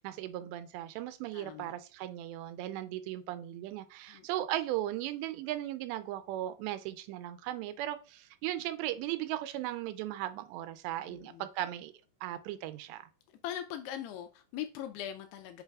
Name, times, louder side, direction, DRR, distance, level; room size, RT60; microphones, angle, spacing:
voice 1, 0.0-11.9 12.2-13.0, right 14 dB, 85° right, 2.7 m, -37 dB
voice 2, 1.3-1.7 4.1-4.3 11.1-11.5 13.4-15.6, left 11 dB, 85° left, 2.4 m, -41 dB
8.9 x 5.2 x 2.4 m
omnidirectional pair, 5.1 m